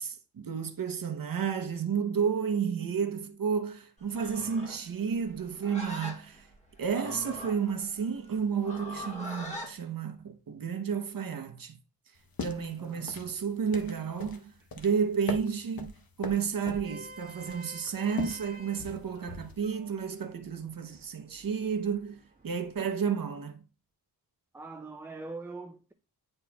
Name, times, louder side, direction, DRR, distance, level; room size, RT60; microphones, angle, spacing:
voice 1, 0.0-6.5 6.8-11.8 12.4-15.9 16.2-23.6, right 6 dB, 60° right, 0.8 m, -31 dB
Livestock farm animals working animals, 4.0-9.7, equal, 15° left, 1.5 m, -42 dB
sound 1, 12.2-19.7, left 4 dB, 60° left, 0.9 m, -41 dB
voice 2, 12.8-13.2 24.5-25.9, right 3 dB, 5° right, 0.3 m, -42 dB
Vehicle horn car horn honking, 16.7-23.0, right 2 dB, 20° right, 1.4 m, -52 dB
9.6 x 4.4 x 2.2 m
wide cardioid pair, 100°, 39 cm